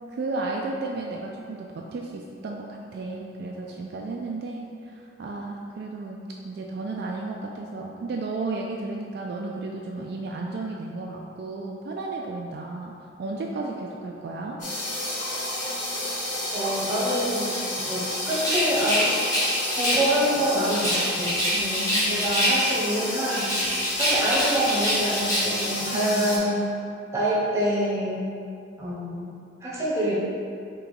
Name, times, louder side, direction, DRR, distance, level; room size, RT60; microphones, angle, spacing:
voice 1, 0.1-14.6 21.5-22.4 25.9-26.5, right 3 dB, 55° right, -1 dB, 0.3 m, -33 dB
sound 1, 14.6-26.4, left 1 dB, 40° left, 1.1 m, -31 dB
voice 2, 16.5-19.1 19.7-23.5 24.0-26.7 27.1-28.2 28.8-29.3 29.6-30.1, equal, 15° right, -7 dB, 0.9 m, -26 dB
Rattle, 18.3-20.2 20.6-22.9 23.3-25.7, equal, 15° left, 1.0 m, -25 dB
3.6 x 3.0 x 4.7 m, 2.4 s
head